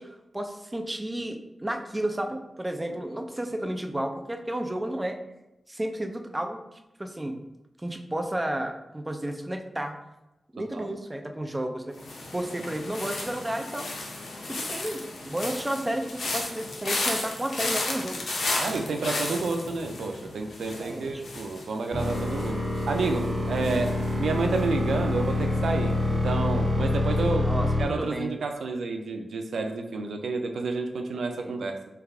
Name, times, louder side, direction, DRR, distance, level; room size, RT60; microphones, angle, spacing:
voice 1, 0.0-5.2 5.7-6.6 7.0-7.4 7.8-10.0 10.5-12.0 12.3-13.9 14.5-18.2 20.6-21.2 27.4-28.3 31.4-31.6, right 1 dB, 15° right, 4 dB, 0.4 m, -32 dB
sound 1, 12.0-25.0 25.3-25.7, left 2 dB, 80° left, 0.7 m, -34 dB
voice 2, 18.6-27.5 27.8-31.8, right 3 dB, 90° right, 4 dB, 0.3 m, -30 dB
sound 2, 21.9-27.8, left 2 dB, 35° right, 1.3 m, -26 dB
3.3 x 2.3 x 3.3 m, 0.93 s
wide cardioid pair, 115°, 0 cm